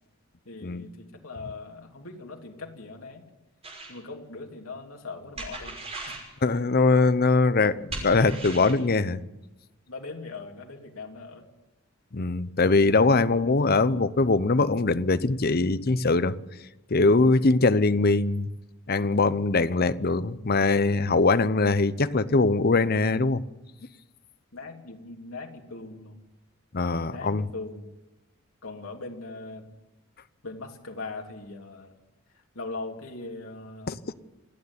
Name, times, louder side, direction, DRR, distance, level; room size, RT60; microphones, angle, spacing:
voice 1, 0.4-3.2 3.9-5.8 6.1-6.2 9.9-11.5 13.3-13.5 24.5-26.1 27.1-27.9 28.6-29.7 30.4-31.9 32.3-33.9, left 3 dB, 85° left, 3.1 m, -40 dB
sound 1, 3.6-4.0 5.4-6.3 7.9-8.8, right 2 dB, 30° right, 5.9 m, -37 dB
voice 2, 6.4-9.2 12.1-16.3 16.9-18.5 18.9-23.4 26.7-27.5 33.9-34.0, left 3 dB, 50° left, 0.8 m, -22 dB
28.0 x 9.5 x 9.8 m
head